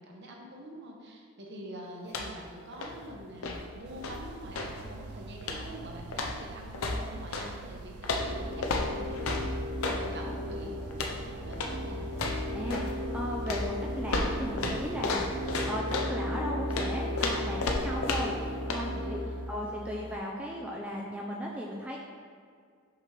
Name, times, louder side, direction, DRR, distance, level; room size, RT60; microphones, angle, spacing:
voice 1, 0.0-9.3 10.0-10.8 11.4-12.1 18.9-19.4, right 1 dB, 50° right, 0 dB, 0.9 m, -45 dB
sound 1, 2.0-2.5 2.7-4.8 5.4-5.8 6.1-7.5 8.0-10.1 10.9-11.2 11.5-11.8 12.1-13.0 13.5-16.2 16.7-18.4 18.7-18.9, left 2 dB, 70° left, 0.6 m, -33 dB
sound 2, 3.9-15.6, right 3 dB, 80° right, 0.4 m, -46 dB
sound 3, 8.2-20.2, left 1 dB, 50° left, 0.9 m, -36 dB
voice 2, 12.5-19.2 19.5-22.0, equal, 5° right, -3 dB, 0.4 m, -36 dB
6.0 x 5.9 x 3.3 m, 2.1 s
head